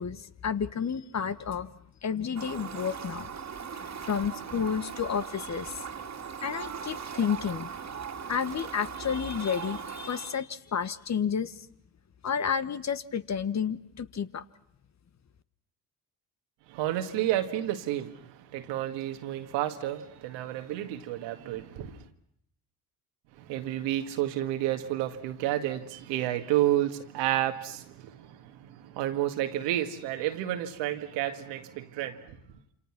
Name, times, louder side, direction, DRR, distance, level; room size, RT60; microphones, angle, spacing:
voice 1, 0.0-1.7 2.0-3.3 4.1-5.7 6.4-7.7 8.3-11.5 12.2-14.4, left 7 dB, 40° left, 1.4 m, -31 dB
Fowl, 2.3-10.4, right 7 dB, 40° right, 2.4 m, -39 dB
voice 2, 16.7-22.0 23.4-32.4, right 13 dB, 75° right, 2.0 m, -31 dB
27.5 x 27.0 x 6.0 m
hypercardioid pair, 55°, 43 cm